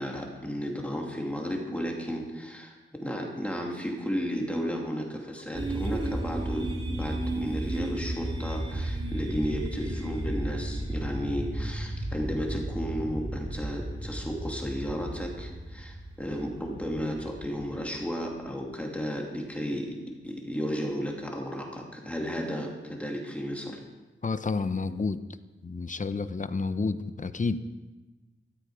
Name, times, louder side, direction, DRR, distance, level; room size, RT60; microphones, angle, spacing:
voice 1, 0.0-20.0 20.2-23.8, equal, 5° left, 0 dB, 2.7 m, -33 dB
sound 1, 5.5-18.4, right 1 dB, 25° right, 2.0 m, -34 dB
voice 2, 24.2-25.2 25.6-27.6, left 4 dB, 35° left, 12 dB, 0.7 m, -30 dB
16.5 x 13.5 x 5.0 m, 1.2 s
wide cardioid pair, 125°, 21 cm